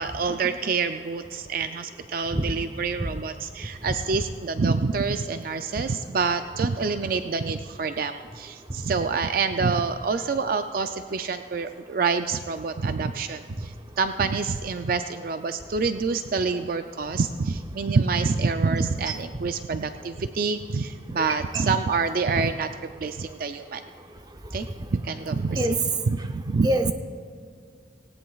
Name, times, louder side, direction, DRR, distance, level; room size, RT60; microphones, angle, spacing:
voice 1, 0.0-22.7 23.0-23.8 24.5-25.8 26.1-26.7, right 4 dB, 55° right, 8 dB, 0.4 m, -27 dB
voice 2, 2.4-2.5 21.2-21.3 21.5-21.6 25.6-25.7 26.6-26.9, right 1 dB, 25° right, 6 dB, 0.7 m, -24 dB
18.0 x 17.5 x 2.4 m, 2.2 s
head